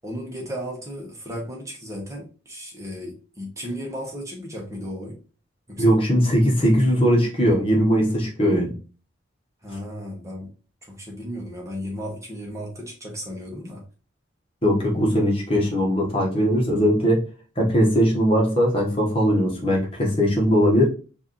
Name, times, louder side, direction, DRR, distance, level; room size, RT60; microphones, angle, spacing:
voice 1, 0.0-5.2 5.7-6.0 9.6-10.5 10.8-13.8, equal, 15° right, -2 dB, 1.2 m, -35 dB
voice 2, 5.8-8.7 14.6-17.2 17.6-20.9, equal, 30° left, -1 dB, 1.3 m, -20 dB
4.8 x 2.7 x 3.1 m, 0.37 s
head